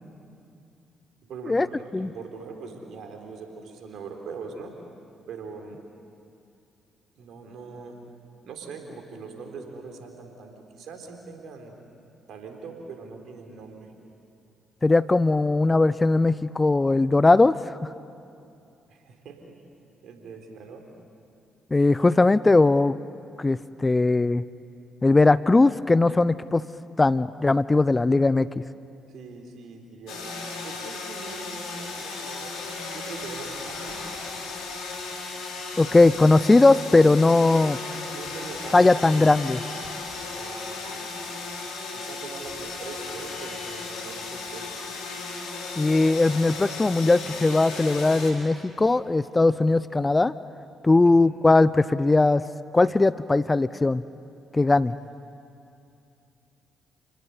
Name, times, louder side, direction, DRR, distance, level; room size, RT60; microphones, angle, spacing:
voice 1, 1.2-4.7 5.3-5.8 7.1-8.0 8.4-11.7 12.3-13.9 18.9-19.5 20.0-20.9 29.1-30.3 30.6-32.6 32.9-34.4 35.8-36.2 37.5-39.7 40.2-41.1 41.9-44.7 50.9-51.1, right 4 dB, 65° right, 3 dB, 3.9 m, -42 dB
voice 2, 14.8-17.8 21.7-23.0 23.4-24.4 25.0-26.6 27.0-28.5 35.8-37.8 38.7-39.6 45.8-50.3 50.8-52.4 52.7-54.0 54.5-54.9, left 2 dB, 25° left, 17 dB, 0.6 m, -19 dB
sound 1, 30.1-48.3, left 3 dB, 70° left, 4.3 m, -35 dB
30.0 x 20.0 x 8.4 m, 2.6 s
hypercardioid pair, 45°, 0 cm